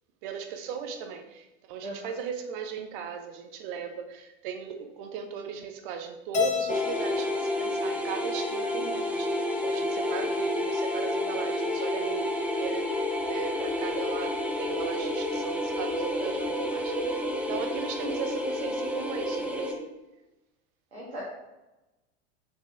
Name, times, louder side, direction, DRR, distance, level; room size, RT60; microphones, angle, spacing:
voice 1, 0.2-12.9 13.3-19.9, right 7 dB, 50° right, 5 dB, 0.9 m, -37 dB
voice 2, 1.8-2.1 20.9-21.2, equal, 80° right, -9 dB, 2.1 m, -39 dB
Keyboard (musical), 6.3-8.7, left 7 dB, 20° left, 0.9 m, -32 dB
sound 1, 6.7-19.7, left 1 dB, 5° right, 0.8 m, -30 dB
6.9 x 4.5 x 3.3 m, 1.0 s
figure-of-eight pair, 80°, 33 cm